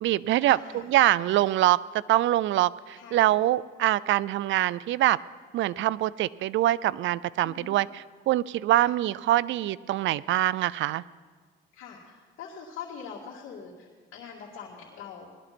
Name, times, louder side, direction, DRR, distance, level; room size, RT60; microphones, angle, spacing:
voice 1, 0.0-1.8 2.1-5.2 5.5-7.9 8.3-11.0, right 14 dB, 75° right, 20 dB, 0.4 m, -24 dB
voice 2, 0.5-0.9 3.0-3.4 7.4-7.7 8.8-8.9 11.7-15.3, left 6 dB, 85° left, -5 dB, 2.3 m, -43 dB
19.5 x 12.0 x 4.3 m, 1.5 s
cardioid pair, 90°, 20 cm